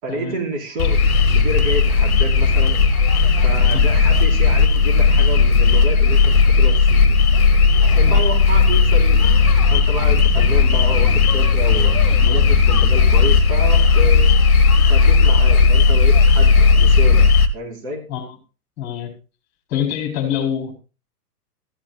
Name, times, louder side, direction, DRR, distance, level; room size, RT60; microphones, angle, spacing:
voice 1, 0.0-2.8 3.4-7.2 7.8-9.3 9.7-12.0 12.2-14.3 14.8-18.0, right 1 dB, 45° right, -1 dB, 5.0 m, -29 dB
sound 1, 0.8-17.5, left 4 dB, 60° left, 1.7 m, -14 dB
voice 2, 18.8-19.1 19.7-20.7, left 9 dB, 35° left, 3 dB, 4.3 m, -25 dB
15.0 x 13.0 x 2.4 m, 0.32 s
figure-of-eight pair, 110°, 48 cm